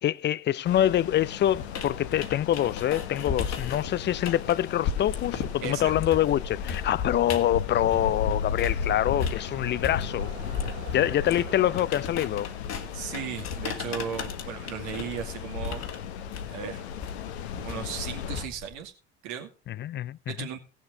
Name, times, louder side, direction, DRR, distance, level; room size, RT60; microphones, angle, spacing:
voice 1, 0.0-10.3 10.9-12.5 19.7-20.5, left 12 dB, 35° left, 0.5 m, -25 dB
sound 1, 0.6-18.5, left 7 dB, 75° left, 1.0 m, -36 dB
sound 2, 1.5-8.9 9.2-18.8, left 6 dB, 50° left, 1.7 m, -36 dB
sound 3, 4.2-4.3 4.5-11.9, right 6 dB, 40° right, 2.2 m, -48 dB
voice 2, 5.6-5.9 12.9-15.9 16.5-16.9 17.5-18.9 19.2-19.5 20.3-20.6, right 8 dB, 65° right, 2.1 m, -36 dB
17.5 x 7.2 x 3.9 m
hypercardioid pair, 60°, 33 cm